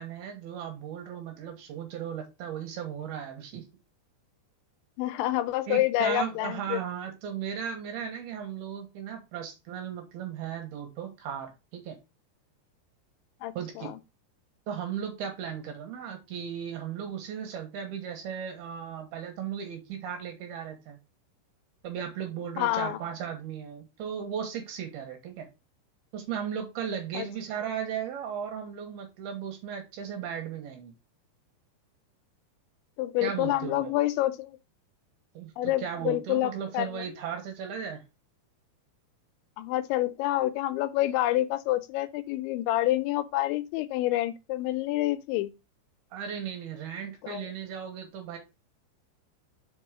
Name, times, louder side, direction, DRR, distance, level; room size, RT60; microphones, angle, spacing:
voice 1, 0.0-3.6 5.7-12.0 13.5-13.9 14.7-21.0 21.8-25.5 26.1-30.9 33.2-33.9 35.3-38.0 46.1-48.4, right 8 dB, 70° right, 2.9 m, -36 dB
voice 2, 5.0-6.8 13.4-14.0 22.6-23.0 27.1-27.3 33.0-34.6 35.6-37.1 39.6-45.5 47.2-47.5, left 15 dB, 85° left, 2.8 m, -28 dB
5.4 x 5.4 x 5.0 m
omnidirectional pair, 5.4 m